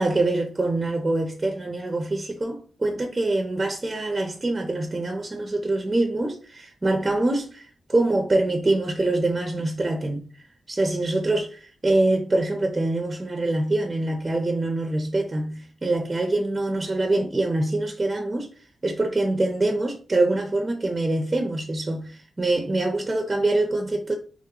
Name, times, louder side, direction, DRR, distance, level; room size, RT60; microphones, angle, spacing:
voice 1, 0.0-10.3 10.7-18.5 18.8-24.1, right 2 dB, 20° right, 0.4 m, -24 dB
3.8 x 2.9 x 2.8 m
wide cardioid pair, 145°, 0 cm